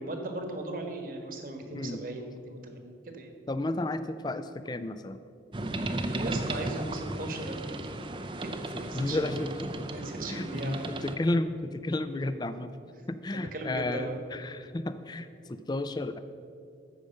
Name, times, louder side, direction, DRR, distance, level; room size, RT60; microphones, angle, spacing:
voice 1, 0.0-3.3 6.0-7.9 8.4-9.5 9.9-10.9 13.5-14.2, right 2 dB, 50° right, 4 dB, 1.3 m, -38 dB
voice 2, 3.5-5.2 8.9-9.7 10.3-12.7 13.1-16.2, left 2 dB, 25° left, 11 dB, 0.4 m, -32 dB
sound 1, 5.5-11.2, right 2 dB, 25° right, 0.5 m, -35 dB
14.0 x 5.0 x 6.5 m, 2.4 s
head